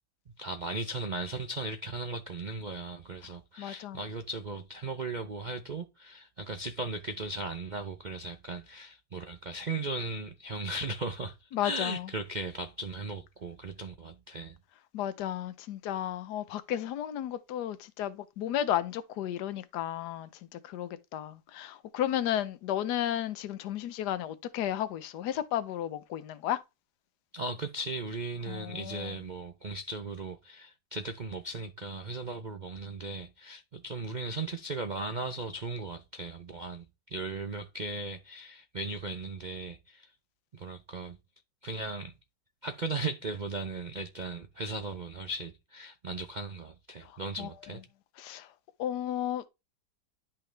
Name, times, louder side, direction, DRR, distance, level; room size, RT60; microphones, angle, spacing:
voice 1, 0.4-14.6 27.3-36.8 37.1-40.1 40.5-41.2 41.6-42.1 42.6-47.8, right 2 dB, 90° right, 0.4 m, -37 dB
voice 2, 3.6-4.0 11.5-12.1 14.9-26.6 28.5-29.1 47.1-47.5 48.2-48.5 48.8-49.5, left 11 dB, 65° left, 1.3 m, -33 dB
11.0 x 5.7 x 3.3 m
omnidirectional pair, 2.0 m